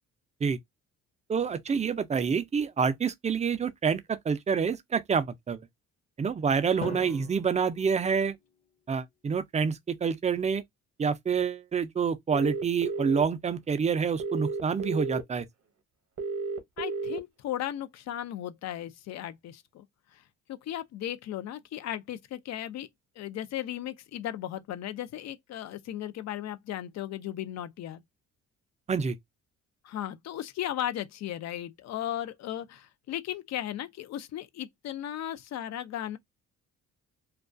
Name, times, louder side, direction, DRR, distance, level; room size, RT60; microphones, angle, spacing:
voice 1, 1.3-5.6 6.2-8.4 8.9-10.6 11.0-15.5 28.9-29.2, right 6 dB, 25° right, 0.3 m, -27 dB
Drum, 6.8-8.9, left 4 dB, 20° left, 0.6 m, -42 dB
sound 1, 12.3-13.2 14.2-15.2 16.2-17.2, right 4 dB, 55° right, 0.8 m, -32 dB
voice 2, 16.8-19.8 20.1-20.2 20.5-22.9 23.2-28.0 29.8-36.2, left 11 dB, 60° left, 0.4 m, -36 dB
2.3 x 2.2 x 2.4 m
cardioid pair, 90°, 30 cm